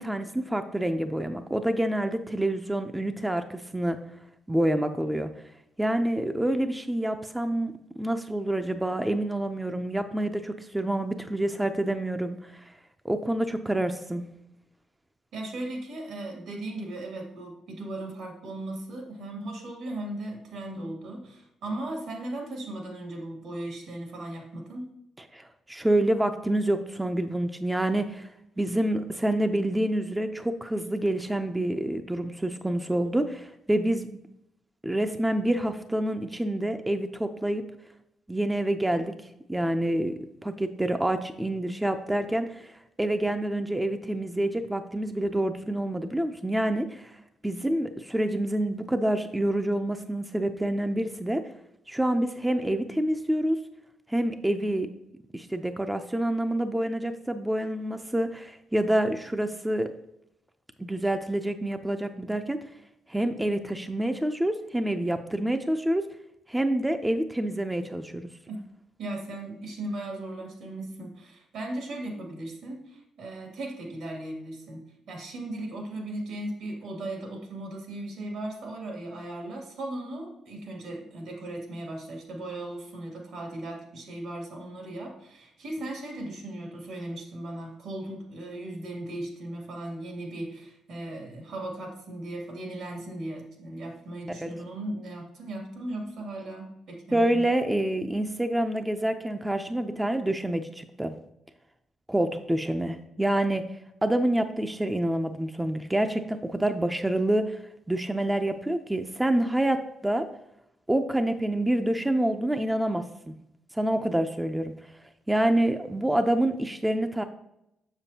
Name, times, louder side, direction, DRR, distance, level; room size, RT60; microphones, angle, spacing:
voice 1, 0.0-4.0 4.5-5.3 5.8-12.6 13.0-14.2 25.3-28.3 28.6-34.2 34.8-37.6 38.3-39.1 39.5-40.1 40.4-42.7 43.0-47.1 47.4-51.4 51.9-53.6 54.1-54.9 55.3-59.9 60.8-62.6 63.1-66.1 66.5-68.3 94.4-94.5 97.1-101.1 102.1-103.7 104.0-107.6 107.9-110.3 110.9-113.3 113.7-114.7 115.3-117.2, right 1 dB, 10° right, 7 dB, 0.5 m, -27 dB
voice 2, 15.3-24.9 68.5-68.6 69.0-74.8 75.1-97.4, right 1 dB, 75° right, 1 dB, 2.3 m, -37 dB
7.0 x 6.8 x 2.8 m, 0.82 s
cardioid pair, 90°, 0 cm